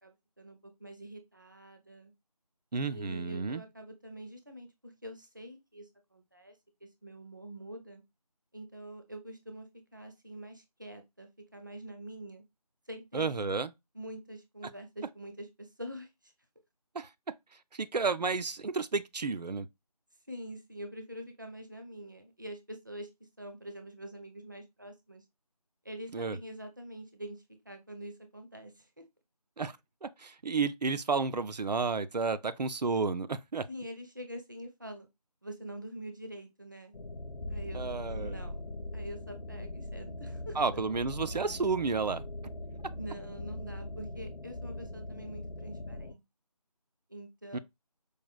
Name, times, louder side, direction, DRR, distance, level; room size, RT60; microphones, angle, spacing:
voice 1, 0.0-2.1 2.9-8.0 8.5-12.4 12.9-13.5 13.9-16.3 20.3-25.2 25.8-29.0 33.7-35.1 35.4-36.9 37.5-38.6 38.9-40.6 43.0-46.2 47.1-47.6, right 1 dB, 30° right, 0.4 m, -45 dB
voice 2, 2.7-3.6 13.1-13.7 16.9-17.1 17.7-19.7 26.1-26.4 29.6-29.8 30.0-33.7 37.7-38.3 40.6-42.2 47.5-47.6, right 4 dB, 90° right, 0.4 m, -31 dB
sound 1, 36.9-46.1, left 1 dB, 80° left, 0.5 m, -41 dB
4.8 x 2.1 x 2.3 m
figure-of-eight pair, 165°, 21 cm